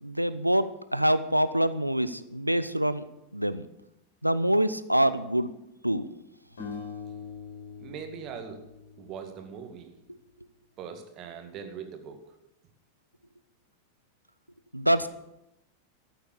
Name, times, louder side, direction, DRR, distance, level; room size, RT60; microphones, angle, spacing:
voice 1, 0.0-3.0 3.3-3.7 4.2-5.5 5.8-6.1 10.1-10.2 14.7-15.1, right 1 dB, 90° right, 14 dB, 0.6 m, -25 dB
sound 1, 6.6-9.7, left 5 dB, 65° left, 4.7 m, -42 dB
voice 2, 7.8-8.6 9.0-9.9 10.8-12.2, right 7 dB, 35° right, 6 dB, 2.0 m, -41 dB
13.5 x 8.0 x 6.9 m, 0.90 s
figure-of-eight pair, 90°, 0 cm